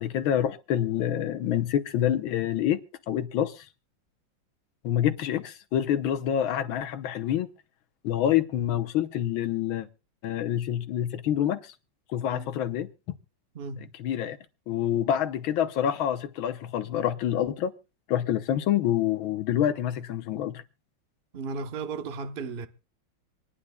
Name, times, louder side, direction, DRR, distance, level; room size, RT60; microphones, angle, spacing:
voice 1, 0.0-3.7 4.8-7.5 8.0-9.9 10.2-11.7 12.1-12.9 14.0-14.4 14.7-17.7 18.1-20.6, left 10 dB, 75° left, 1.6 m, -27 dB
voice 2, 13.5-13.9 21.3-22.7, right 4 dB, 50° right, 0.6 m, -35 dB
26.0 x 10.0 x 2.2 m
omnidirectional pair, 2.3 m